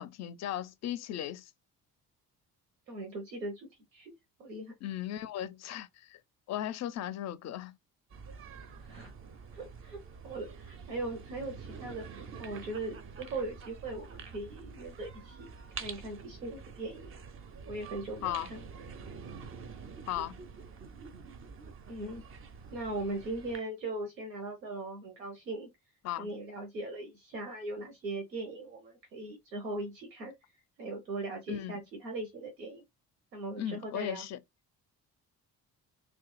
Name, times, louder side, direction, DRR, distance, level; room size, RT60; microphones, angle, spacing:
voice 1, 0.0-1.5 4.8-6.2 6.5-7.8 18.2-18.5 20.1-20.4 26.0-26.3 31.5-31.8 33.6-34.4, left 12 dB, 35° left, 0.4 m, -37 dB
voice 2, 2.9-4.7 8.8-9.1 9.5-15.5 15.8-17.2 17.7-18.7 21.9-22.2 22.7-25.7 26.2-30.3 30.8-32.8 33.3-34.3, right 2 dB, 85° right, 0.7 m, -39 dB
sound 1, 8.1-23.6, right 5 dB, 30° right, 0.5 m, -47 dB
2.9 x 2.1 x 3.0 m
figure-of-eight pair, 45°, 49 cm